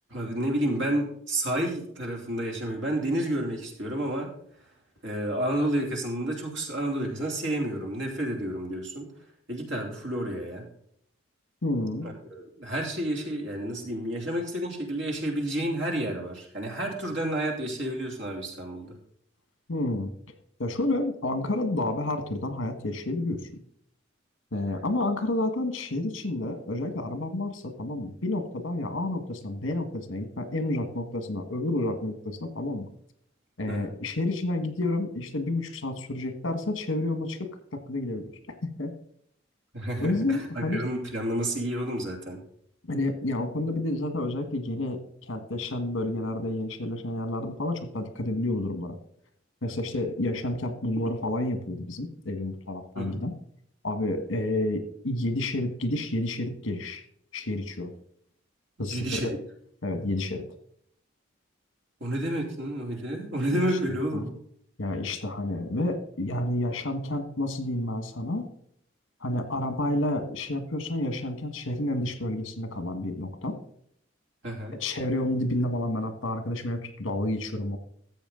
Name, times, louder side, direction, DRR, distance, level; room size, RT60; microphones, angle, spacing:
voice 1, 0.1-4.3 5.0-9.1 9.5-10.6 12.0-19.0 33.7-33.9 39.7-42.4 53.0-53.2 58.8-59.4 62.0-64.3 74.4-74.8, right 1 dB, 65° right, 1 dB, 3.0 m, -30 dB
voice 2, 11.6-12.1 19.7-20.1 20.6-23.4 24.5-32.9 33.6-38.9 40.0-40.8 42.8-49.0 49.6-53.3 53.8-57.0 57.3-57.9 58.8-59.2 59.8-60.4 64.1-64.3 64.8-68.5 69.2-73.6 74.8-77.8, left 1 dB, 75° left, 9 dB, 1.6 m, -30 dB
13.5 x 7.8 x 3.8 m, 0.67 s
head